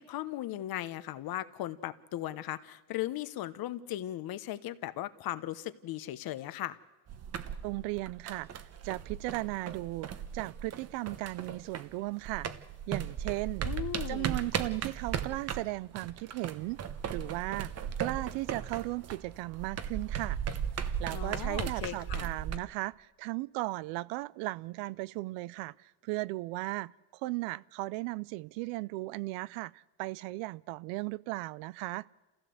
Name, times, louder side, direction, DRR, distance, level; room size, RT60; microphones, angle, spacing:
voice 1, 0.0-6.8 13.6-14.3 21.1-22.3, left 14 dB, 50° left, 1.1 m, -37 dB
sound 1, 7.1-12.0 12.2-22.6, right 8 dB, 30° right, 1.1 m, -37 dB
voice 2, 7.6-8.5 8.8-12.5 12.9-13.7 14.1-16.9 17.1-17.7 18.0-20.4 21.0-32.1, right 20 dB, 75° right, 0.6 m, -36 dB
27.5 x 15.5 x 7.8 m
cardioid pair, 130°, 47 cm